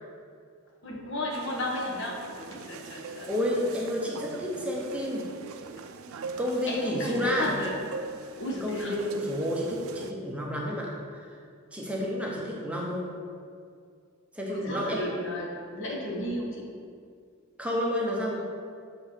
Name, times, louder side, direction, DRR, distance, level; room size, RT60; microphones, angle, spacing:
voice 1, 0.8-3.3 6.7-7.8 8.4-8.9 14.5-16.7, left 1 dB, 65° left, -2 dB, 1.2 m, -34 dB
sound 1, 1.3-10.1, right 4 dB, 85° right, 0.4 m, -42 dB
voice 2, 3.3-5.3 6.1-7.5 8.6-11.4 11.7-13.1 14.3-15.0 17.6-18.4, equal, 5° right, -3 dB, 0.8 m, -30 dB
6.5 x 4.6 x 4.4 m, 2.2 s
head